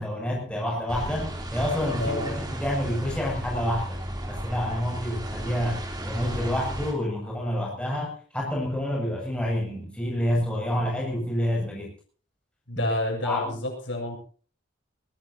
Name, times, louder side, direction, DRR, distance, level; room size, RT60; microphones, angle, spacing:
voice 1, 0.0-4.0 4.3-5.8 6.0-11.9 12.8-12.9 13.2-13.6, equal, 5° left, -2 dB, 7.2 m, -28 dB
sound 1, 0.9-6.9, right 1 dB, 20° right, 3.4 m, -34 dB
voice 2, 2.0-2.4 12.7-14.2, left 1 dB, 65° left, 1 dB, 7.8 m, -29 dB
21.5 x 18.5 x 2.9 m, 0.42 s
head